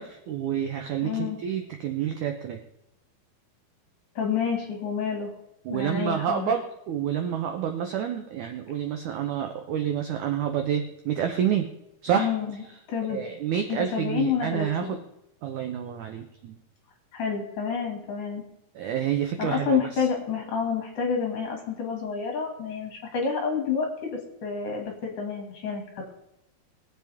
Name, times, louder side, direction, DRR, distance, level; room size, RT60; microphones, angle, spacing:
voice 1, 0.0-2.6 5.6-11.7 12.0-12.3 13.1-15.0 15.4-16.6 18.7-20.0, right 9 dB, 75° right, 5 dB, 1.8 m, -28 dB
voice 2, 1.0-1.4 4.1-5.3 5.7-6.5 12.2-13.2 13.7-15.0 17.1-18.4 19.4-26.1, left 6 dB, 55° left, 1 dB, 3.5 m, -29 dB
22.5 x 7.6 x 3.5 m, 0.86 s
omnidirectional pair, 4.5 m